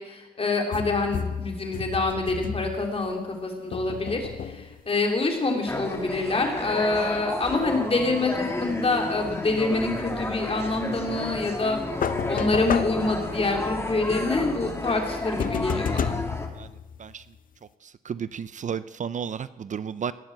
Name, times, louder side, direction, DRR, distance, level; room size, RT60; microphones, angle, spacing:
voice 1, 0.0-11.8 12.2-16.2, left 3 dB, 40° left, 2 dB, 3.1 m, -26 dB
sound 1, 0.7-3.2 3.7-4.9 12.0-13.7 15.4-17.4, left 7 dB, 60° left, 0.7 m, -32 dB
sound 2, 5.7-16.5, left 2 dB, 15° left, 1.9 m, -32 dB
voice 2, 17.8-20.1, right 7 dB, 50° right, 15 dB, 0.5 m, -33 dB
18.0 x 7.2 x 7.9 m, 1.1 s
cardioid pair, 100°, 16 cm